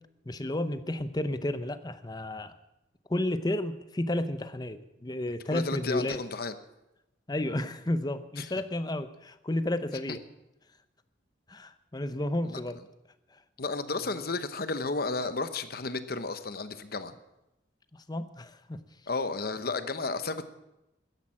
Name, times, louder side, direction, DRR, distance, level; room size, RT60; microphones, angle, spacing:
voice 1, 0.3-2.5 3.1-6.2 7.3-10.2 11.5-12.8 14.1-14.2 17.9-18.8, left 1 dB, 20° left, 12 dB, 0.7 m, -32 dB
voice 2, 5.5-6.5 8.4-8.5 12.4-12.6 13.6-17.1 19.1-20.4, left 3 dB, 55° left, 11 dB, 0.9 m, -32 dB
13.5 x 11.0 x 7.5 m, 0.92 s
head